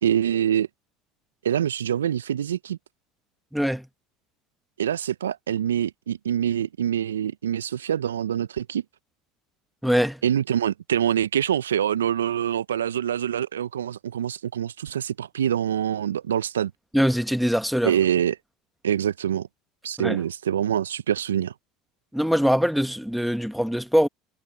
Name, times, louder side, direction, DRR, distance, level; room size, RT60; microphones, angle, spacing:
voice 1, 0.0-0.7 1.4-2.8 4.8-8.8 10.2-16.7 17.8-18.4 18.8-19.5 19.8-21.5, right 9 dB, 80° right, 0.8 m, -25 dB
voice 2, 3.5-3.9 9.8-10.2 16.9-17.9 20.0-20.2 22.1-24.1, equal, ahead, 1.9 m, -22 dB
hypercardioid pair, 70°, 0 cm